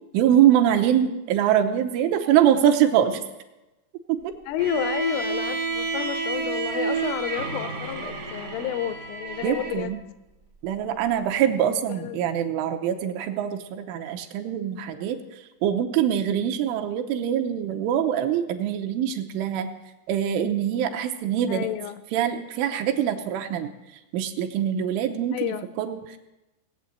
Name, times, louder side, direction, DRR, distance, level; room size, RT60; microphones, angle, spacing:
voice 1, 0.1-3.2 4.1-4.3 9.4-10.0 10.6-15.2 15.6-19.7 20.1-21.7 22.1-23.7 24.1-26.2, right 10 dB, 80° right, 5 dB, 3.2 m, -23 dB
voice 2, 4.5-10.0 11.9-12.2 21.5-22.0 25.3-25.6, left 11 dB, 80° left, 11 dB, 3.1 m, -30 dB
Bowed string instrument, 4.6-9.8, right 4 dB, 50° right, 1.0 m, -30 dB
18.5 x 8.0 x 8.1 m, 1.0 s
omnidirectional pair, 5.8 m